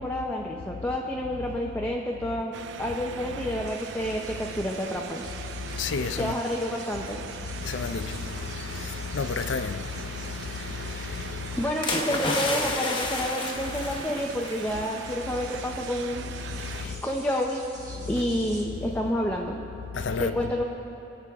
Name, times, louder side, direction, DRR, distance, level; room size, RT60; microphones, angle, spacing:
voice 1, 0.0-2.5 2.8-5.3 6.2-7.2 11.2-16.3 16.8-17.6 18.1-19.6 20.1-20.6, equal, 10° left, 0.6 m, -29 dB
sound 1, 2.5-16.9, right 7 dB, 65° right, 0.4 m, -41 dB
sound 2, 3.6-18.6, right 2 dB, 20° right, 1.6 m, -47 dB
voice 2, 5.5-6.4 7.4-11.7 16.4-17.0 18.0-18.1 19.9-20.6, left 5 dB, 75° left, 0.5 m, -32 dB
sound 3, 11.8-14.9 15.2-15.4, left 2 dB, 25° left, 1.1 m, -30 dB
24.5 x 8.5 x 3.6 m
head